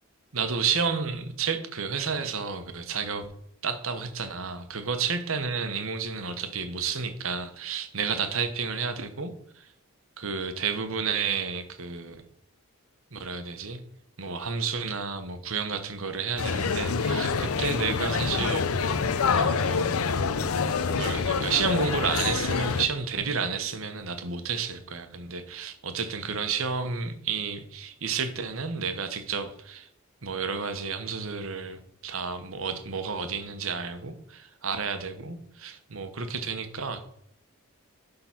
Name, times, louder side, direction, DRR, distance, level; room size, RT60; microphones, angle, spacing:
voice 1, 0.3-3.3 3.6-9.7 10.2-12.2 13.1-13.8 14.2-19.0 19.3-19.9 20.9-29.9 30.2-37.0, right 5 dB, 70° right, 1.1 m, -31 dB
sound 1, 16.4-22.9, left 5 dB, 85° left, 0.6 m, -26 dB
11.5 x 3.9 x 5.8 m
head